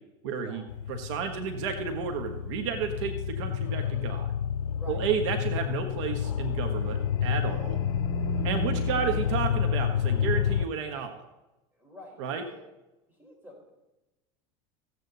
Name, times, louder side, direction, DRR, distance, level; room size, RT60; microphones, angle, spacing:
voice 1, 0.2-4.3 4.9-7.8 8.4-11.2 12.2-12.4, right 7 dB, 75° right, 6 dB, 1.4 m, -32 dB
sound 1, 0.7-10.7, left 9 dB, 85° left, 0.5 m, -29 dB
voice 2, 4.7-5.1 7.4-7.8 11.7-12.6 13.1-13.7, left 1 dB, 10° right, -1 dB, 4.6 m, -49 dB
sound 2, 7.0-9.5, right 21 dB, 50° right, 0.5 m, -38 dB
15.0 x 8.7 x 4.1 m, 0.99 s
supercardioid pair, 115°, 15 cm